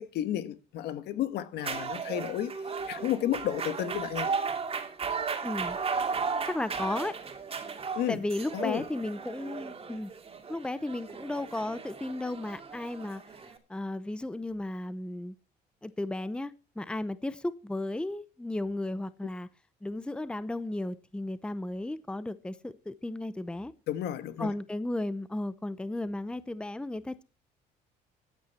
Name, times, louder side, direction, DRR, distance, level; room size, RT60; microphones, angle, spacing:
voice 1, 0.0-4.3 7.9-8.2 8.5-8.8 23.9-24.5, left 12 dB, 75° left, 1.5 m, -32 dB
sound 1, 1.6-13.6, right 5 dB, 35° right, 2.4 m, -35 dB
voice 2, 5.4-5.8 6.4-7.2 8.1-10.1 10.5-13.2 13.7-15.3 15.8-19.5 19.8-23.7 24.4-27.2, left 1 dB, 5° left, 0.7 m, -34 dB
14.5 x 9.4 x 4.3 m
cardioid pair, 110°, 17 cm